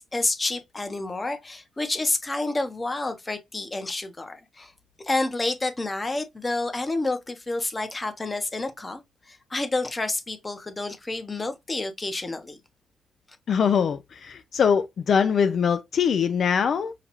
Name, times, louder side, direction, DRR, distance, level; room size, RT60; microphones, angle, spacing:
voice 1, 0.1-4.7 5.0-9.0 9.3-12.6, left 2 dB, 20° left, 0.8 m, -29 dB
voice 2, 13.5-16.9, left 7 dB, 60° left, 0.4 m, -22 dB
5.7 x 2.3 x 2.9 m
cardioid pair, 120°, 0 cm